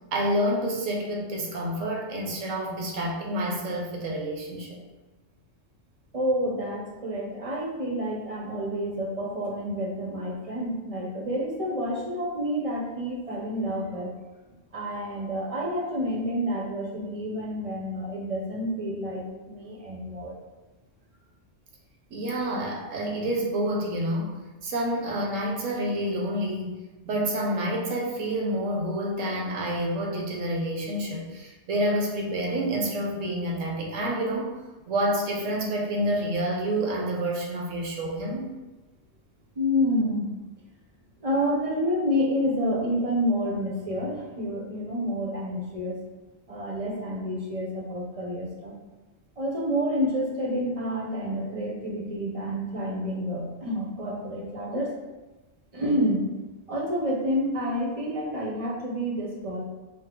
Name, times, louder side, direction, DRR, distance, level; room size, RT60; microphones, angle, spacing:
voice 1, 0.1-4.8 22.1-24.4 24.6-26.8 27.0-34.6 34.9-38.5, right 1 dB, 80° right, -1 dB, 1.2 m, -28 dB
voice 2, 6.1-14.1 14.7-20.4 39.6-40.3 41.2-45.9 46.5-48.7 49.4-54.9 55.7-56.3 56.7-59.6, equal, 35° right, -2 dB, 0.7 m, -29 dB
5.3 x 2.0 x 3.7 m, 1.2 s
omnidirectional pair, 1.3 m